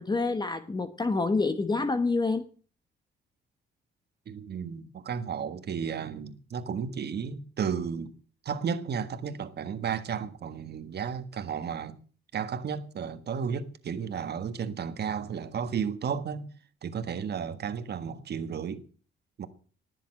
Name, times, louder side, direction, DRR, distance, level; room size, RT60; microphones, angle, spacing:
voice 1, 0.0-2.4, left 3 dB, 20° left, 1.1 m, -27 dB
voice 2, 4.3-8.1 8.4-12.0 12.3-16.5 16.8-18.9 19.4-19.5, right 7 dB, 55° right, 1.7 m, -33 dB
19.5 x 7.4 x 7.5 m
cardioid pair, 90°, 20 cm